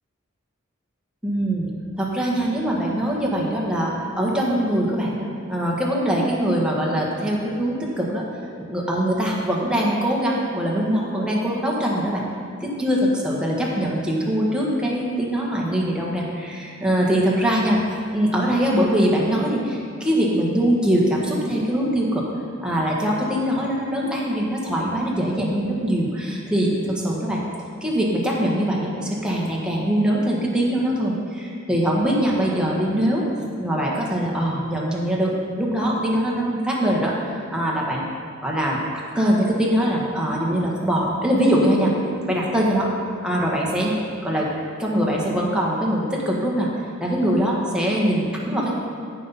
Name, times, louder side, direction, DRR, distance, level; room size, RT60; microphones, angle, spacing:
voice 1, 1.2-1.7 2.0-8.2 8.6-12.2 12.6-17.8 18.1-22.2 22.6-27.4 27.8-33.2 33.6-38.0 38.4-38.8 39.1-41.9 42.3-42.9 43.2-44.0 44.2-44.5 44.8-46.7 47.0-48.7, equal, 5° right, -4 dB, 1.6 m, -22 dB
15.5 x 5.7 x 4.2 m, 2.3 s
head